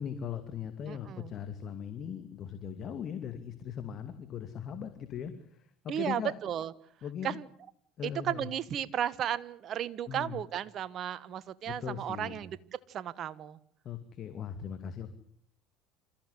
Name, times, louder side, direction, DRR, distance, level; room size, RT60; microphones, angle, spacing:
voice 1, 0.0-5.7 6.0-6.3 7.0-7.4 8.0-8.5 10.1-10.4 11.7-12.4 13.8-15.1, left 8 dB, 45° left, 8 dB, 2.5 m, -39 dB
voice 2, 0.9-1.3 5.9-6.7 7.2-7.5 8.0-12.6 12.9-13.6, right 10 dB, 50° right, 17 dB, 1.4 m, -34 dB
27.5 x 15.0 x 9.9 m, 0.62 s
hypercardioid pair, 75°, 0 cm